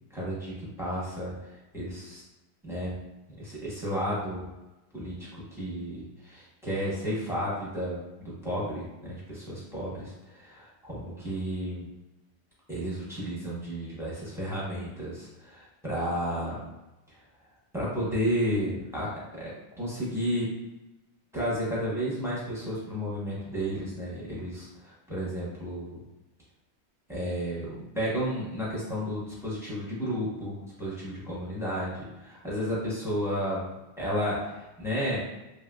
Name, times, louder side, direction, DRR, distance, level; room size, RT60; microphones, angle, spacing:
voice 1, 0.1-1.3 1.7-2.2 2.6-3.0 3.4-4.5 4.9-11.9 12.7-16.7 17.7-20.5 21.3-26.0 27.1-33.6 34.0-35.2, equal, 5° right, -8 dB, 0.8 m, -32 dB
3.1 x 2.7 x 2.3 m, 1.0 s
omnidirectional pair, 1.1 m